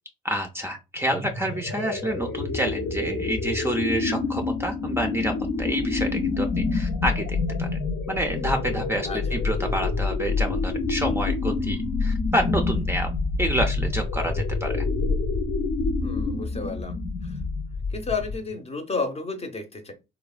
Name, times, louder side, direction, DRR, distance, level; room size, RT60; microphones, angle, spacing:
voice 1, 0.2-7.7 8.1-13.1 13.4-14.8, right 1 dB, 10° right, 3 dB, 0.4 m, -28 dB
sound 1, 1.0-18.5, left 3 dB, 75° left, 0.6 m, -27 dB
voice 2, 9.0-9.4 16.0-17.0 17.2-17.4 17.9-19.9, left 4 dB, 30° left, 5 dB, 0.7 m, -32 dB
3.1 x 2.1 x 2.3 m, 0.26 s
cardioid pair, 90°, 20 cm